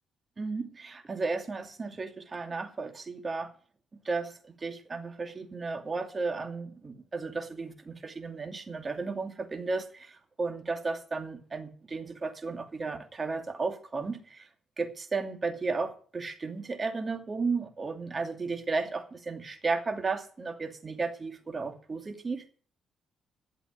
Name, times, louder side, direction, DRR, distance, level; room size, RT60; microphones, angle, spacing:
voice 1, 0.4-3.5 4.0-14.5 14.8-22.4, right 4 dB, 30° right, 2.5 m, -34 dB
12.0 x 7.9 x 9.4 m
cardioid pair, 90°, 0 cm